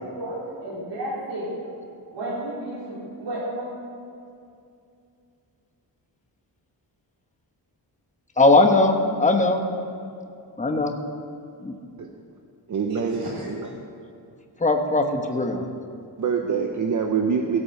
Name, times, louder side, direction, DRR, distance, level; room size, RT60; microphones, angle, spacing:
voice 1, 0.0-1.5 2.1-3.7 12.9-13.5, right 1 dB, 80° right, -7 dB, 4.2 m, -32 dB
voice 2, 8.4-9.6 10.6-10.9 11.6-11.7 14.6-15.6, left 2 dB, 15° left, 4 dB, 1.1 m, -19 dB
voice 3, 12.7-13.7 16.2-17.6, right 6 dB, 45° right, 3 dB, 0.9 m, -25 dB
16.5 x 8.6 x 6.6 m, 2.5 s
wide cardioid pair, 145°, 43 cm